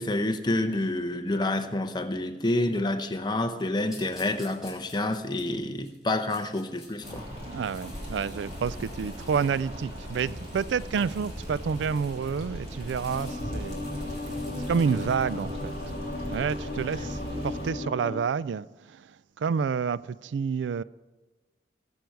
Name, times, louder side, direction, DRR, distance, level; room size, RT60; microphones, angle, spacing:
voice 1, 0.0-7.3, left 2 dB, 25° left, 0.8 m, -28 dB
sound 1, 3.9-7.1 7.5-16.2, left 2 dB, 5° right, 4.8 m, -52 dB
Lake Boga Evening, 7.0-17.7, equal, 35° right, 3.4 m, -38 dB
voice 2, 7.5-16.0 16.3-20.8, right 6 dB, 85° right, 0.3 m, -29 dB
sound 2, 13.1-18.2, left 2 dB, 55° left, 1.8 m, -36 dB
20.5 x 7.8 x 4.7 m
head